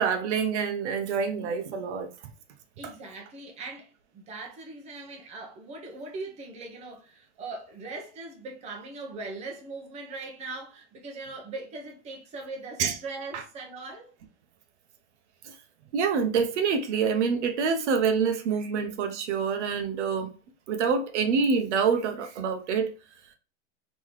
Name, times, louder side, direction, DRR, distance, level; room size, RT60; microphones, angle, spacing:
voice 1, 0.0-2.1 2.8-2.9 12.8-13.0 13.3-13.4 15.4-15.5 15.9-20.3 20.7-22.9, right 6 dB, 70° right, 0.8 m, -26 dB
voice 2, 2.8-14.1, right 3 dB, 20° right, 0.8 m, -40 dB
3.7 x 3.0 x 3.1 m
supercardioid pair, 145°, 36 cm